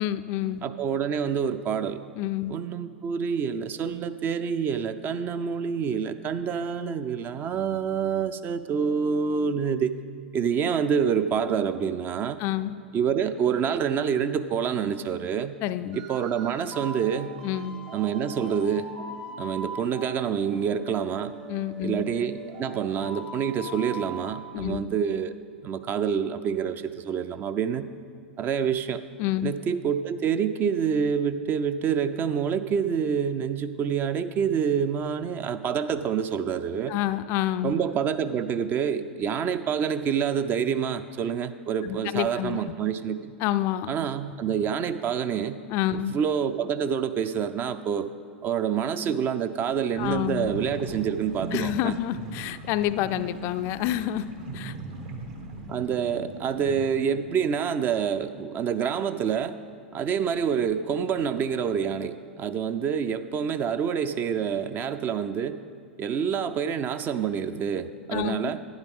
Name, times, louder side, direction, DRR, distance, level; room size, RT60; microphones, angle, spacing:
voice 1, 0.0-0.7 2.2-2.5 12.4-12.7 15.6-16.0 17.4-17.8 21.5-22.1 24.5-24.8 29.2-29.6 36.9-37.7 41.8-42.6 43.4-43.9 45.7-46.2 50.0-50.5 51.5-54.8 68.1-68.5, left 13 dB, 45° left, 12 dB, 0.3 m, -28 dB
voice 2, 0.6-2.0 2.5-10.0 10.3-12.4 12.9-15.6 15.9-17.4 17.9-18.9 19.4-21.4 21.8-25.3 25.6-27.9 28.4-29.0 29.4-36.9 37.6-43.3 43.9-45.6 45.9-48.1 48.4-51.9 55.7-59.5 59.9-65.6 66.0-68.6, right 7 dB, 30° right, 12 dB, 0.4 m, -27 dB
sound 1, 15.9-24.3, right 2 dB, 70° right, 1.9 m, -41 dB
sound 2, 50.0-56.9, right 3 dB, 55° right, 1.3 m, -39 dB
11.5 x 9.9 x 3.6 m, 2.3 s
hypercardioid pair, 100°, 6 cm